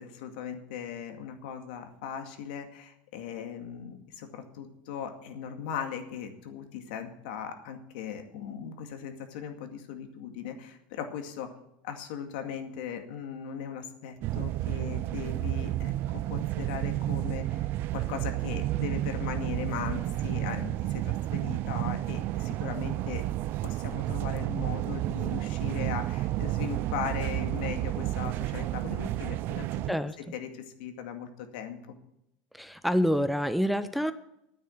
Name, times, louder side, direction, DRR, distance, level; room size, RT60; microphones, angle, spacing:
voice 1, 0.0-11.5 11.8-29.8 30.3-31.9, left 8 dB, 80° left, 5 dB, 2.1 m, -38 dB
sound 1, 14.2-29.9, right 15 dB, 50° right, 0.4 m, -31 dB
voice 2, 32.5-34.1, equal, ahead, 11 dB, 0.6 m, -27 dB
9.8 x 9.1 x 8.4 m, 0.81 s
supercardioid pair, 130°, 5 cm